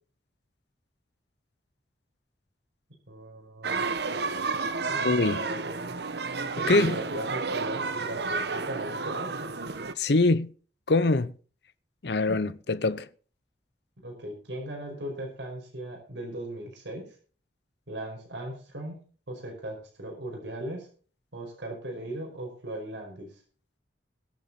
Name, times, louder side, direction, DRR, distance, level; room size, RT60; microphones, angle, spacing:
voice 1, 3.1-3.9 4.1-6.0 6.6-9.5 12.3-12.5 14.0-17.2 17.9-19.0 19.3-20.9 21.3-23.4, right 1 dB, 80° right, 5.2 m, -38 dB
sound 1, 3.6-9.9, right 4 dB, 65° right, 1.1 m, -31 dB
voice 2, 5.0-5.4 6.7-7.0 10.0-10.5 10.9-11.3 12.0-13.1, left 3 dB, 65° left, 0.7 m, -23 dB
22.0 x 7.5 x 4.1 m
head